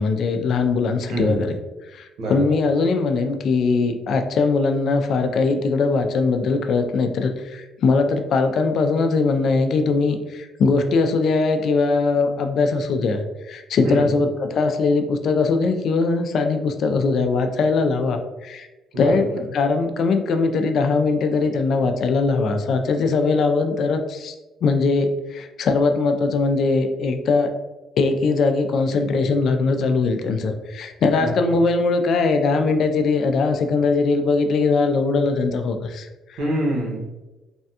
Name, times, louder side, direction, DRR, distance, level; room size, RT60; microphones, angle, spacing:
voice 1, 0.0-1.6 1.9-18.7 19.0-24.3 24.6-27.5 28.0-36.4, left 4 dB, 60° left, 6 dB, 0.3 m, -21 dB
voice 2, 2.2-2.5 13.8-14.2 18.9-19.2 31.2-31.3 36.4-37.1, right 1 dB, 85° right, -3 dB, 1.0 m, -25 dB
3.3 x 2.2 x 2.7 m, 1.1 s
cardioid pair, 105°, 0 cm